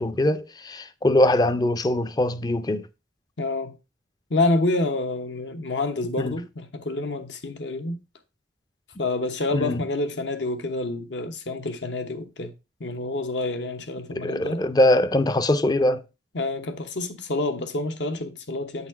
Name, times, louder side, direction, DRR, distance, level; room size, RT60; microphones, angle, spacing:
voice 1, 0.0-2.8 6.2-6.3 9.5-9.8 14.1-16.0, left 1 dB, 20° left, 0.4 m, -22 dB
voice 2, 3.4-3.7 4.3-8.0 9.0-12.5 12.8-14.6 16.3-18.9, left 2 dB, 70° left, 1.0 m, -28 dB
8.5 x 4.1 x 4.4 m
head